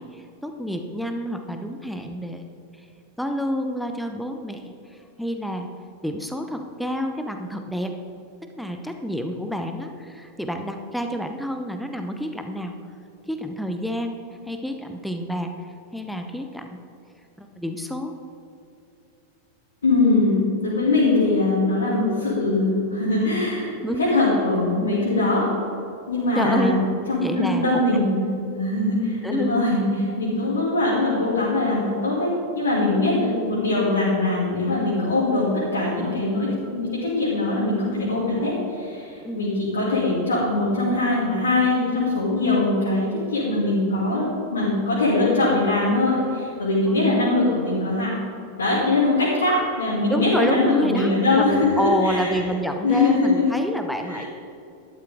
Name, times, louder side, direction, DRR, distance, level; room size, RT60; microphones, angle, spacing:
voice 1, 0.0-2.4 3.2-5.7 6.0-8.0 8.6-12.7 13.3-15.5 15.9-16.8 17.4-18.1 23.8-24.1 26.3-26.8 27.2-28.0 29.2-29.5 32.9-33.0 39.2-39.5 47.1-47.3 50.1-54.2, equal, ahead, 5 dB, 0.7 m, -28 dB
voice 2, 19.8-23.7 24.0-25.4 26.1-26.8 27.1-28.2 28.5-48.1 48.6-52.4 52.8-53.5 54.0-54.3, left 2 dB, 75° left, -7 dB, 2.6 m, -22 dB
12.0 x 11.5 x 3.5 m, 2.7 s
figure-of-eight pair, 90°, 0 cm